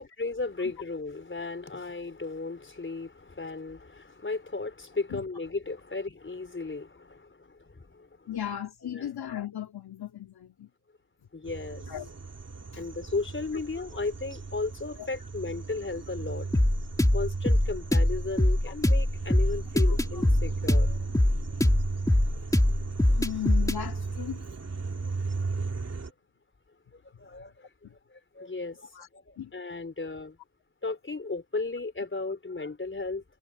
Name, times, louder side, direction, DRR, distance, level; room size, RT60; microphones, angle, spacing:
voice 1, 0.0-8.1 8.8-9.1 11.3-11.8 12.8-16.5 17.1-21.0 27.2-27.7 28.1-30.4 30.8-33.2, left 3 dB, 30° left, 4.4 m, -35 dB
voice 2, 8.3-10.7 11.9-12.1 12.7-12.8 15.0-15.1 18.7-18.8 19.8-20.2 23.1-24.4 27.8-27.9 28.9-29.1 29.4-29.5, left 10 dB, 65° left, 2.7 m, -36 dB
sound 1, 11.4-26.1, right 4 dB, 35° right, 3.5 m, -36 dB
sound 2, 16.5-23.8, left 1 dB, 10° left, 2.3 m, -23 dB
supercardioid pair, 45°, 41 cm